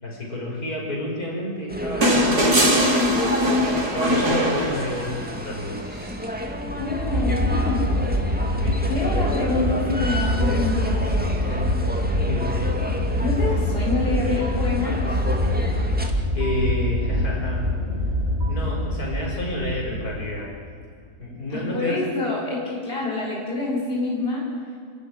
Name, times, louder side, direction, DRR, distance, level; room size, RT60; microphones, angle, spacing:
voice 1, 0.0-3.1 3.9-5.8 8.6-8.8 12.3-12.5 15.7-15.9 16.3-17.7 18.5-20.5 21.2-22.0, left 1 dB, 70° left, -2 dB, 5.9 m, -29 dB
sound 1, 1.7-16.1, equal, 5° right, 2.0 m, -30 dB
sound 2, 2.0-5.4 6.9-7.0, equal, 85° right, 3.9 m, -21 dB
sound 3, 6.6-20.7, left 1 dB, 30° right, 3.6 m, -25 dB
voice 2, 6.7-8.3 8.9-11.6 13.2-15.3 21.5-24.5, left 2 dB, 35° left, -3 dB, 4.6 m, -27 dB
29.0 x 13.5 x 10.0 m, 2.3 s
omnidirectional pair, 1.6 m